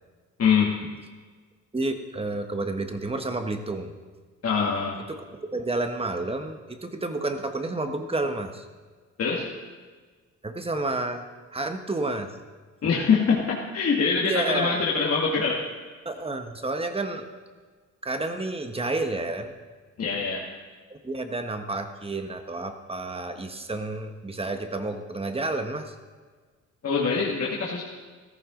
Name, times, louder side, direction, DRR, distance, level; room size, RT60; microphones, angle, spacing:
voice 1, 0.4-0.9 4.4-5.0 9.2-9.5 12.8-15.6 20.0-20.5 26.8-27.8, left 5 dB, 50° left, -3 dB, 2.1 m, -24 dB
voice 2, 1.7-3.9 5.1-8.7 10.4-11.2 11.5-12.3 14.2-14.9 16.0-17.3 18.0-19.6 20.9-25.9, right 2 dB, 20° right, 7 dB, 1.4 m, -30 dB
14.5 x 14.0 x 3.9 m, 1.5 s
cardioid pair, 90°, 30 cm